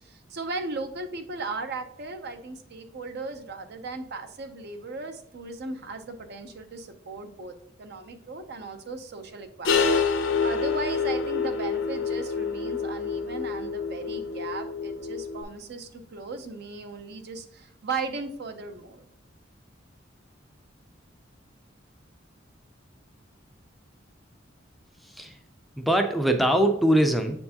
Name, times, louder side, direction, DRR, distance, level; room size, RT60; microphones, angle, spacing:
voice 1, 0.0-19.0, right 3 dB, 60° right, 7 dB, 0.6 m, -37 dB
sound 1, 9.6-15.4, left 5 dB, 85° left, 0.7 m, -27 dB
voice 2, 25.0-25.4 25.8-27.4, right 1 dB, ahead, 5 dB, 0.4 m, -22 dB
7.4 x 4.5 x 2.8 m, 0.70 s
head